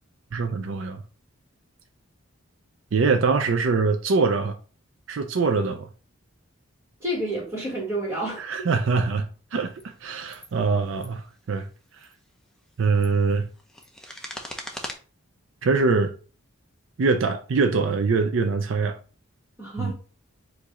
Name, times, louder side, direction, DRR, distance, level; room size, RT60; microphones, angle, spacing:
voice 1, 0.3-1.0 2.9-4.5 5.1-5.9 8.4-9.7 10.0-11.7 12.8-13.5 15.6-16.1 17.0-19.0 19.8-19.9, right 4 dB, 65° right, 0.4 m, -23 dB
voice 2, 7.0-8.4 19.6-19.9, right 1 dB, 15° right, 1.8 m, -29 dB
sound 1, 9.7-9.8 10.3-10.5 10.9-11.1 11.9-12.1 12.7-14.9, left 1 dB, 5° left, 0.5 m, -39 dB
4.6 x 2.7 x 4.1 m
head